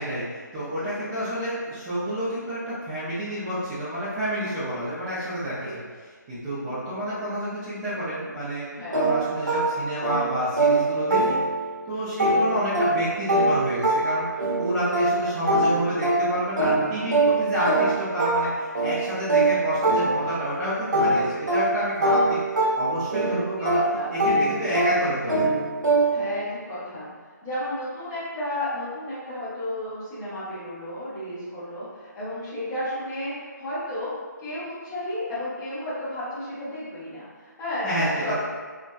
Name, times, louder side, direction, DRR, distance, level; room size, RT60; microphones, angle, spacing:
voice 1, 0.0-5.8 6.3-8.7 8.9-11.4 11.9-14.3 14.6-22.4 22.8-23.8 24.1-25.4 37.8-38.4, equal, 15° right, -14 dB, 0.4 m, -29 dB
voice 2, 0.8-1.1 5.6-5.7 6.6-6.7 8.8-9.0 11.9-12.3 21.2-21.3 23.7-24.1 26.1-27.1 27.4-34.1 34.4-38.4, left 1 dB, 15° left, -12 dB, 0.8 m, -33 dB
sound 1, 8.9-11.8 12.2-20.5 20.9-26.4, right 2 dB, 70° right, 0.9 m, -24 dB
2.6 x 2.2 x 2.2 m, 1.5 s
figure-of-eight pair, 160°, 10 cm